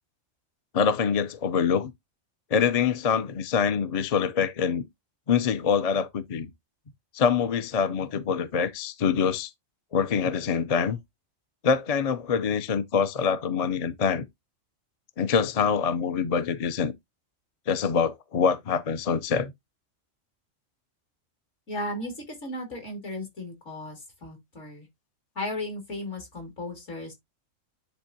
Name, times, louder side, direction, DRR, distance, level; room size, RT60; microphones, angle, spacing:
voice 1, 0.7-1.9 2.5-4.9 5.3-6.5 7.1-9.5 9.9-11.0 11.6-14.3 15.2-16.9 17.7-19.5, left 6 dB, 45° left, 0.5 m, -25 dB
voice 2, 21.7-24.9 25.3-27.1, left 1 dB, 65° left, 3.0 m, -35 dB
10.5 x 3.7 x 2.7 m
omnidirectional pair, 1.4 m